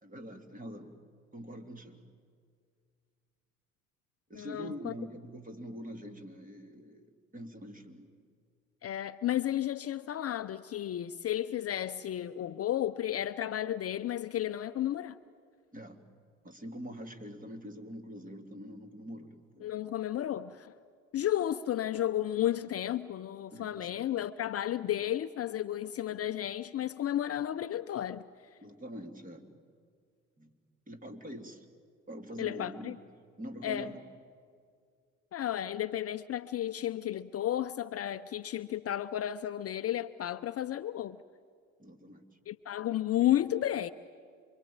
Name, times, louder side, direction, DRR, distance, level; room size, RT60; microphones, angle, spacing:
voice 1, 0.0-1.0 1.3-2.0 4.3-8.2 15.7-16.0 16.4-19.7 23.5-24.0 28.6-29.6 30.4-30.6 30.9-31.7 32.1-33.0 33.4-34.0 41.8-42.2, equal, 20° right, 3.3 m, -44 dB
voice 2, 4.3-4.9 8.8-15.2 19.6-20.7 21.1-28.2 32.4-32.9 33.6-33.9 35.3-41.2 42.5-43.9, left 12 dB, 40° left, 0.7 m, -33 dB
27.0 x 24.0 x 8.9 m
hypercardioid pair, 65°, 39 cm